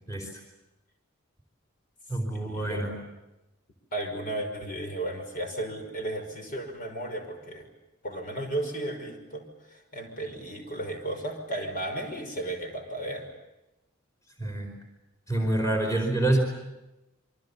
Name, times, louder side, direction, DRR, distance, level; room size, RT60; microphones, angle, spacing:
voice 1, 0.1-0.4 2.1-2.9 14.4-14.7 15.3-16.4, right 1 dB, 15° left, 3 dB, 4.7 m, -27 dB
voice 2, 2.3-3.0 3.9-7.7 8.0-13.3, right 1 dB, 45° left, 4 dB, 5.8 m, -34 dB
28.5 x 24.5 x 7.2 m, 0.96 s
head